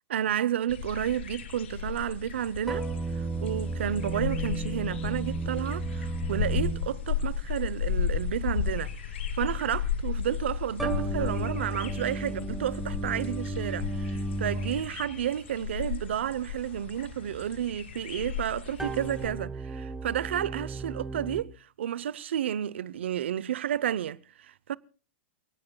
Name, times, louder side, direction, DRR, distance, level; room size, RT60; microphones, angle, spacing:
voice 1, 0.1-2.8 3.2-21.5 21.8-24.8, right 10 dB, 80° right, 0.7 m, -31 dB
sound 1, 0.7-19.3, left 8 dB, 75° left, 2.9 m, -35 dB
sound 2, 2.7-7.3 10.8-15.1 18.8-21.4, right 2 dB, 5° right, 1.2 m, -34 dB
28.0 x 18.0 x 2.3 m
supercardioid pair, 180°, 6 cm